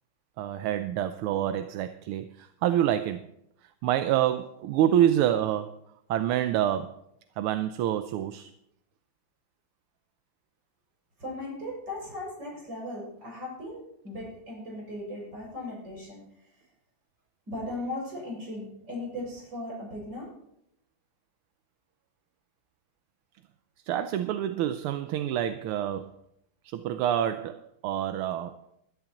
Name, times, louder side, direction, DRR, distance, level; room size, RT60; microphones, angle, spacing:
voice 1, 0.4-3.3 3.8-5.8 6.1-7.0 7.4-8.5 23.9-26.1 26.6-28.6, right 11 dB, 85° right, 9 dB, 1.5 m, -27 dB
voice 2, 11.2-16.5 17.5-20.3, left 1 dB, 55° right, -3 dB, 7.3 m, -38 dB
21.5 x 11.5 x 3.0 m, 0.78 s
omnidirectional pair, 2.3 m